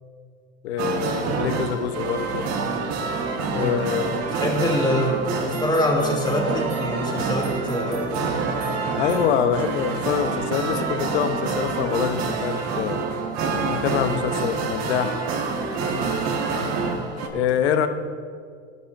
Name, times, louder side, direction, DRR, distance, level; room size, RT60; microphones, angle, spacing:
voice 1, 0.6-2.5 3.5-4.3 9.0-13.0 13.5-15.2 17.3-17.9, left 8 dB, 85° left, 9 dB, 0.9 m, -25 dB
sound 1, 0.8-17.3, right 4 dB, 50° right, 1.6 m, -27 dB
voice 2, 3.5-8.3 8.8-9.1 17.3-17.4 17.7-17.9, left 1 dB, 15° left, 0 dB, 2.9 m, -25 dB
18.0 x 11.0 x 2.6 m, 2.1 s
hypercardioid pair, 95°, 32 cm